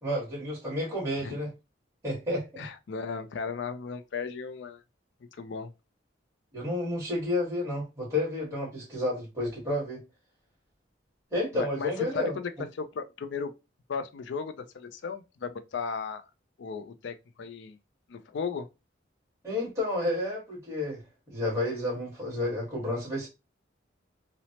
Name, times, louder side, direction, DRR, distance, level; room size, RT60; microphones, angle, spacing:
voice 1, 0.0-1.5 2.0-2.7 6.5-10.0 11.3-12.3 19.4-23.3, left 1 dB, 15° right, 1.4 m, -31 dB
voice 2, 2.6-4.8 5.3-5.7 11.5-12.5 12.8-13.5 13.9-16.2 16.6-17.8 18.1-18.7, left 5 dB, 70° left, 0.4 m, -35 dB
3.0 x 2.0 x 2.7 m
head